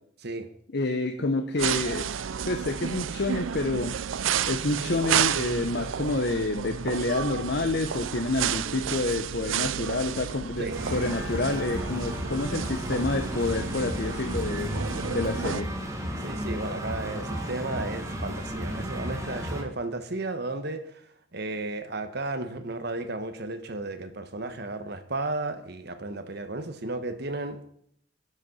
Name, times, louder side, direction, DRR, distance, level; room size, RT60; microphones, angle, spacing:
voice 1, 0.7-2.1 2.4-3.9 4.5-14.7 15.1-15.7, left 2 dB, 55° left, 6 dB, 1.0 m, -28 dB
sound 1, 1.6-15.6, right 8 dB, 85° right, 0.6 m, -31 dB
sound 2, 10.7-19.6, equal, 15° right, 2.3 m, -33 dB
voice 2, 16.2-21.0 21.3-27.7, right 2 dB, 55° right, 8 dB, 1.6 m, -34 dB
12.5 x 11.0 x 5.6 m, 0.67 s
head